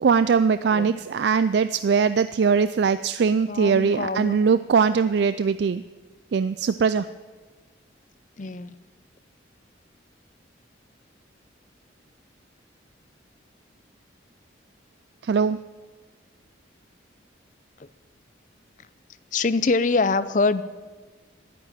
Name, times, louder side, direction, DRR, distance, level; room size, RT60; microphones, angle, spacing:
voice 1, 0.0-5.8 6.3-7.1 15.2-15.6, right 5 dB, 60° right, 14 dB, 0.3 m, -21 dB
voice 2, 3.5-4.4 8.4-8.7 17.8-17.9 19.3-20.6, left 3 dB, 40° left, 14 dB, 0.5 m, -24 dB
12.0 x 10.5 x 8.8 m, 1.4 s
head